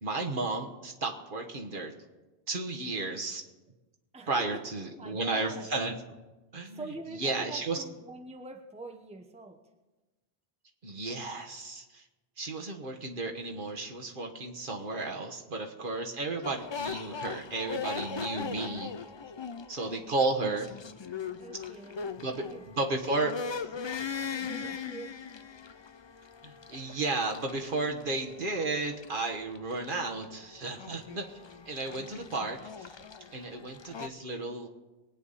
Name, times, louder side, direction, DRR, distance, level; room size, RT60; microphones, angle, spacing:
voice 1, 0.0-1.9 2.5-3.4 4.3-5.9 6.5-6.8 7.2-7.8 10.8-12.0 12.4-18.9 19.7-20.7 22.2-22.4 22.8-23.6 26.4-31.2 31.7-33.0 33.3-34.7, right 3 dB, 55° right, 2 dB, 1.5 m, -33 dB
voice 2, 4.1-5.7 6.7-9.6 21.4-22.7 24.3-25.2, right 2 dB, 5° right, 4 dB, 0.9 m, -45 dB
sound 1, 16.4-34.1, left 6 dB, 40° left, 0.4 m, -40 dB
22.5 x 9.3 x 4.1 m, 1.1 s
omnidirectional pair, 1.1 m